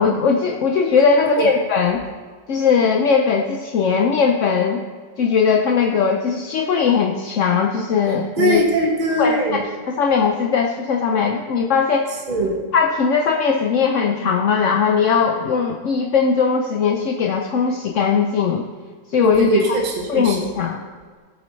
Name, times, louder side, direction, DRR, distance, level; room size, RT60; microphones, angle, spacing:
voice 1, 0.0-2.0 2.5-4.8 5.2-8.6 9.2-12.2 12.7-18.7 19.1-19.6 20.1-20.8, left 5 dB, 60° left, 2 dB, 0.8 m, -19 dB
voice 2, 8.4-9.6 12.3-12.6 19.2-20.5, right 1 dB, 25° right, -1 dB, 1.3 m, -20 dB
19.0 x 8.2 x 3.2 m, 1.5 s
omnidirectional pair, 2.0 m